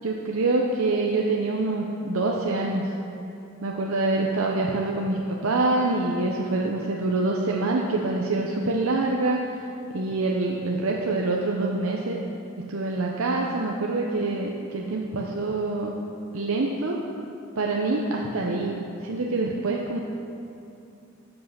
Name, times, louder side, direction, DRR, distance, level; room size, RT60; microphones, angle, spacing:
voice 1, 0.0-2.8 3.6-9.4 9.9-12.2 12.6-15.9 16.3-17.0 17.6-20.0, right 2 dB, 80° right, -1 dB, 0.7 m, -25 dB
14.5 x 5.5 x 5.7 m, 2.7 s
head